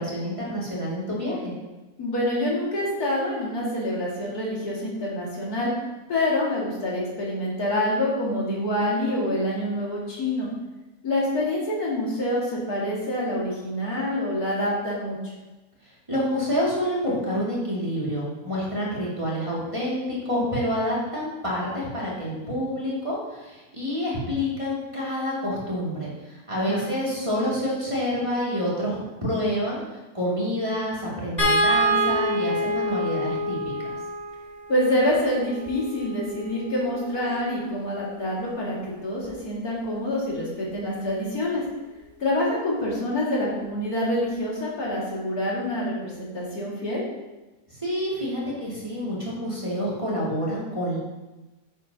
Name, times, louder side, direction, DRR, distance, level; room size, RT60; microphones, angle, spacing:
voice 1, 0.0-1.5 16.1-29.8 30.1-34.0 47.7-51.0, equal, 20° right, -7 dB, 2.5 m, -28 dB
voice 2, 2.0-5.7 6.1-10.5 11.0-15.3 26.5-26.8 34.7-41.6 42.2-47.0, left 1 dB, 75° left, -5 dB, 2.7 m, -26 dB
sound 1, 31.4-37.7 39.2-39.4 39.8-39.9, equal, 25° left, 2.6 m, -27 dB
10.5 x 7.6 x 2.9 m, 1.1 s
omnidirectional pair, 1.6 m